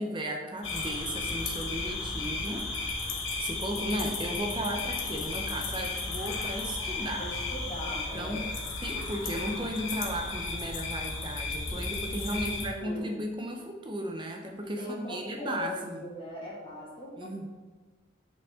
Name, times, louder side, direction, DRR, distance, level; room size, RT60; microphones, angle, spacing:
voice 1, 0.0-7.3 8.1-8.5 8.8-16.1 17.2-17.5, right 1 dB, 25° right, 2 dB, 0.7 m, -35 dB
sound 1, 0.6-12.7, left 3 dB, 85° left, 1.0 m, -34 dB
voice 2, 7.1-8.5 12.3-13.2 14.8-17.5, left 1 dB, 25° left, -7 dB, 2.2 m, -40 dB
6.7 x 5.4 x 3.7 m, 1.3 s
head